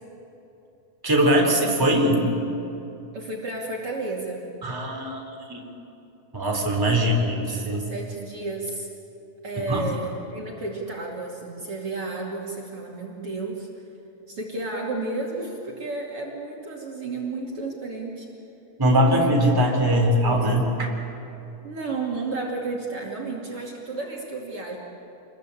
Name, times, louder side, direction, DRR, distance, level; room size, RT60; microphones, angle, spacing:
voice 1, 1.0-2.3 4.6-5.2 5.5-5.6 6.3-7.1 7.5-7.8 9.7-9.9 18.8-20.9, right 1 dB, 5° right, 0 dB, 3.4 m, -21 dB
voice 2, 3.1-4.4 6.9-8.9 9.4-13.7 14.3-18.3 19.9-20.6 21.6-24.8, right 3 dB, 45° right, -2 dB, 3.3 m, -32 dB
27.5 x 21.5 x 8.5 m, 2.9 s
omnidirectional pair, 3.8 m